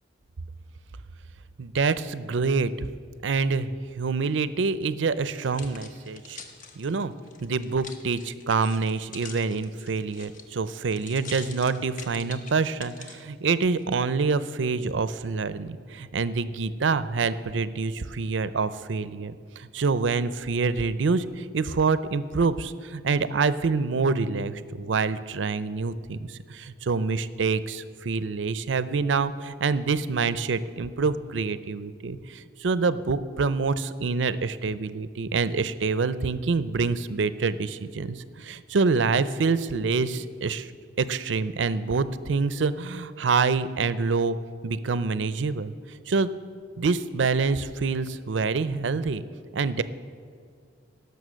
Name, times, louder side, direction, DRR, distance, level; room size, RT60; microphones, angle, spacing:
voice 1, 1.6-2.9 3.2-6.4 6.8-7.1 7.4-40.7 41.0-44.4 44.6-46.3 46.8-49.2 49.5-49.8, right 4 dB, 70° right, 15 dB, 0.5 m, -26 dB
sound 1, 5.2-13.2 13.8-13.9, left 4 dB, 45° left, 1.0 m, -45 dB
17.5 x 6.7 x 6.3 m, 2.2 s
head